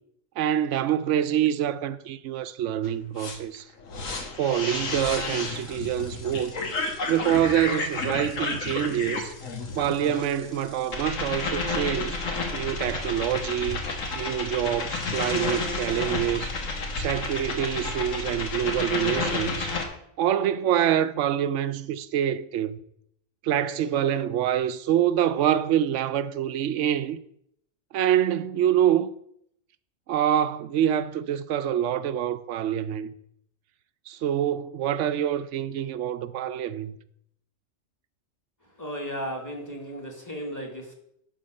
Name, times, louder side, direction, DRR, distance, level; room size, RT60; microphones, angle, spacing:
voice 1, 0.4-3.7 4.4-6.5 7.1-9.3 9.7-12.2 12.5-13.9 14.1-16.5 16.9-19.8 20.2-22.8 23.4-27.2 27.9-29.1 30.1-33.1 34.1-37.0, right 10 dB, 75° right, 0.9 m, -26 dB
sound 1, 2.8-2.9 3.2-19.8, left 3 dB, 85° left, 1.8 m, -31 dB
voice 2, 38.8-40.9, equal, 15° left, 1.8 m, -35 dB
11.0 x 4.2 x 6.4 m
omnidirectional pair, 1.3 m